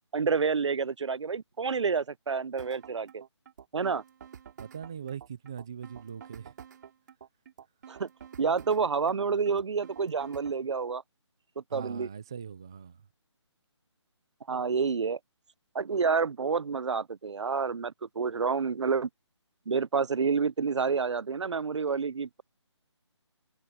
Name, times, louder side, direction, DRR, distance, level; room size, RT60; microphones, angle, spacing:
voice 1, 0.1-3.2 3.7-4.0 7.9-8.1 8.4-11.0 11.6-12.1 14.5-15.2 15.7-19.1 19.7-22.4, right 5 dB, 70° right, 0.7 m, -29 dB
sound 1, 2.6-10.6, right 8 dB, 40° right, 3.0 m, -49 dB
voice 2, 4.6-6.5 11.7-13.1, right 7 dB, 10° right, 0.3 m, -41 dB
figure-of-eight pair, 165°, 15 cm